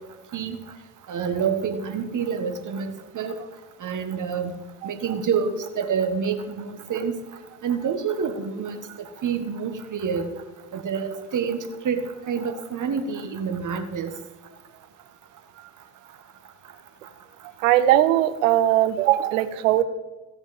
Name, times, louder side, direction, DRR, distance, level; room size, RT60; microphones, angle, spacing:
voice 1, 1.1-3.4 3.8-4.6 4.8-7.2 7.6-8.8 9.2-10.3 10.7-14.1, right 6 dB, 50° right, 8 dB, 1.8 m, -27 dB
voice 2, 17.6-19.8, right 13 dB, 80° right, 15 dB, 0.8 m, -19 dB
15.0 x 7.1 x 7.2 m, 1.2 s
hypercardioid pair, 45°, 38 cm